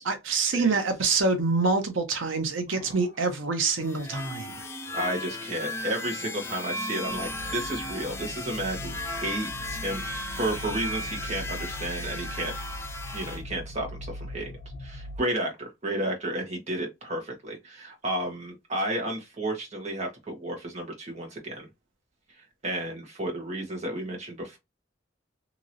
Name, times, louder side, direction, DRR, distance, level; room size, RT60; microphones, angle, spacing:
voice 1, 0.0-4.7, right 4 dB, 85° right, 0.8 m, -26 dB
sound 1, 3.8-13.4, left 1 dB, 15° left, 0.5 m, -36 dB
voice 2, 4.9-12.5 13.1-14.5 14.8-21.7 22.4-24.6, right 1 dB, 35° right, 1.2 m, -32 dB
sound 2, 7.1-15.2, equal, 65° left, 0.8 m, -40 dB
2.9 x 2.8 x 2.6 m
head